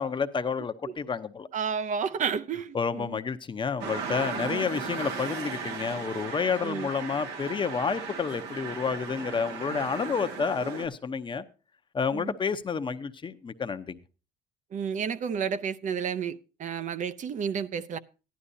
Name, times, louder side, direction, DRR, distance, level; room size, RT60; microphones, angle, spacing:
voice 1, 0.0-1.5 2.7-11.4 11.9-14.0, left 5 dB, 30° left, 0.8 m, -30 dB
voice 2, 1.5-3.2 4.4-4.7 6.6-6.9 12.1-12.3 14.7-18.0, right 7 dB, 50° right, 0.6 m, -31 dB
sound 1, 3.8-10.9, right 5 dB, 90° right, 1.7 m, -36 dB
15.0 x 11.5 x 2.7 m
cardioid pair, 110°, 17 cm